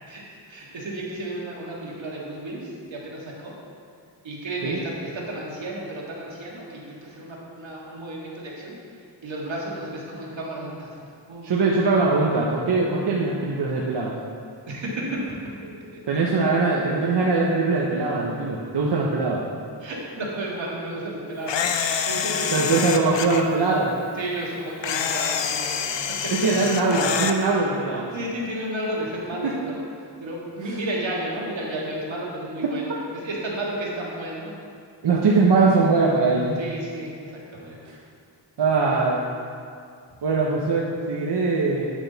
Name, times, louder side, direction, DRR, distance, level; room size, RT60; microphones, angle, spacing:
voice 1, 0.5-3.5 4.2-8.8 9.2-11.8 14.7-15.2 15.4-16.0 19.8-23.0 24.2-26.0 26.2-26.3 27.5-27.6 28.1-29.8 30.2-34.5 36.6-37.9 38.8-39.0, right 1 dB, 85° right, -4 dB, 1.8 m, -33 dB
voice 2, 11.4-14.1 16.1-19.4 22.5-23.9 26.3-28.1 29.4-29.5 32.6-32.7 35.0-36.6 38.6-39.2 40.2-41.9, right 3 dB, 65° right, -3 dB, 0.9 m, -21 dB
Camera, 21.5-23.4 24.8-27.4, left 7 dB, 75° left, 0.6 m, -26 dB
9.2 x 6.1 x 4.0 m, 2.3 s
wide cardioid pair, 75°, 44 cm